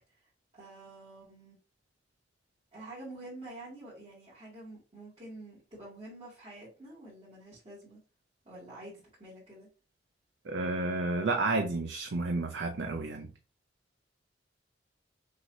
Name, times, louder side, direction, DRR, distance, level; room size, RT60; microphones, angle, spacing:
voice 1, 0.5-1.6 2.7-8.0 8.4-9.7, right 2 dB, 30° right, 2.5 m, -48 dB
voice 2, 10.5-13.3, right 3 dB, 75° right, 0.6 m, -31 dB
6.2 x 2.9 x 2.7 m
head